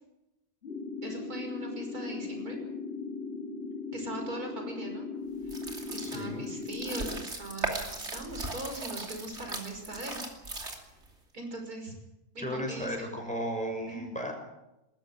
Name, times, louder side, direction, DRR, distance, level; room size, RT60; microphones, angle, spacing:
sound 1, 0.6-7.2, left 4 dB, 40° left, 3.4 m, -38 dB
voice 1, 1.0-2.6 3.9-5.1 5.5-5.6 5.9-10.2 11.3-11.9 12.3-13.2 13.9-14.1, right 1 dB, 75° right, 3 dB, 6.2 m, -40 dB
sound 2, 5.4-11.1, right 3 dB, 45° right, 3.2 m, -38 dB
voice 2, 6.0-6.4 12.4-14.3, equal, 5° left, 1 dB, 6.4 m, -35 dB
20.5 x 15.0 x 9.4 m, 0.95 s
omnidirectional pair, 1.6 m